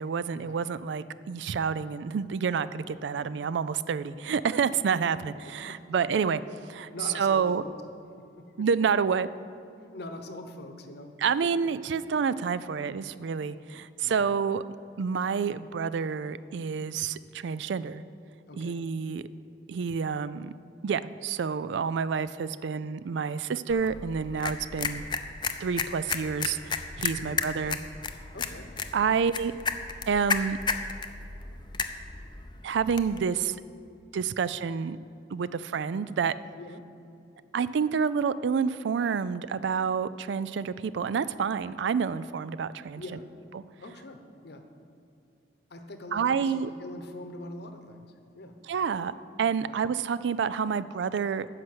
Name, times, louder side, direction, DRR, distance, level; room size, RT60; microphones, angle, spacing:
voice 1, 0.0-6.4 6.7-7.6 8.6-9.3 11.2-14.6 15.0-18.0 18.6-19.3 19.7-20.5 20.8-25.0 25.6-27.8 28.9-29.5 30.1-30.6 32.6-33.6 34.1-35.0 35.3-36.3 37.5-43.0 43.5-43.6 46.1-46.7 48.6-51.5, right 6 dB, 70° right, 16 dB, 0.4 m, -28 dB
voice 2, 5.7-6.0 6.9-7.8 8.2-8.7 9.9-11.1 11.4-11.7 14.0-14.3 18.5-18.8 27.2-27.4 28.3-28.7 29.0-29.1 36.6-36.8 42.9-43.3 43.8-44.6 45.7-48.1 48.3-48.6 49.6-49.8, left 2 dB, 60° left, 6 dB, 1.0 m, -43 dB
sound 1, 23.7-33.2, left 5 dB, 25° left, 0.5 m, -34 dB
9.9 x 6.4 x 7.9 m, 2.6 s
head